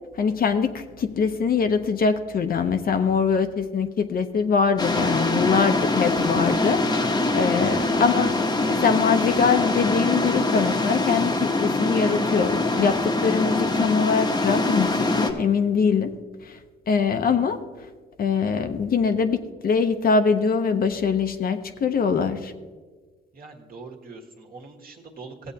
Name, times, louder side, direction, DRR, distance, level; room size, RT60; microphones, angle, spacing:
voice 1, 0.2-8.4 8.7-16.1 16.4-16.6 16.9-17.6 18.2-22.5, left 5 dB, 50° left, 8 dB, 0.7 m, -23 dB
sound 1, 4.8-15.3, left 2 dB, 20° left, 0.9 m, -23 dB
voice 2, 23.3-25.5, right 3 dB, 45° right, 0 dB, 1.5 m, -43 dB
15.0 x 7.9 x 2.8 m, 1.4 s
cardioid pair, 90°, 20 cm